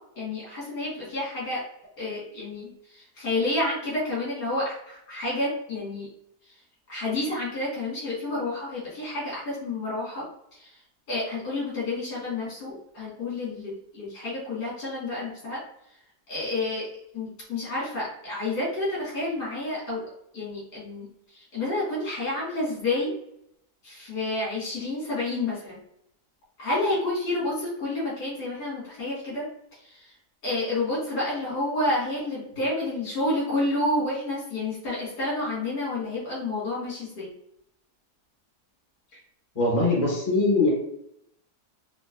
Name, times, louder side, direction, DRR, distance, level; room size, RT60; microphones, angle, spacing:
voice 1, 0.2-1.6 2.0-2.7 3.2-6.1 6.9-10.2 11.1-15.6 16.3-16.9 17.1-20.0 20.3-21.1 21.4-23.1 23.8-25.8 26.6-29.4 30.4-37.3, left 2 dB, 80° left, -7 dB, 2.2 m, -29 dB
voice 2, 39.5-40.7, left 2 dB, 30° left, -5 dB, 1.3 m, -22 dB
4.4 x 2.7 x 2.3 m, 0.74 s
omnidirectional pair, 1.7 m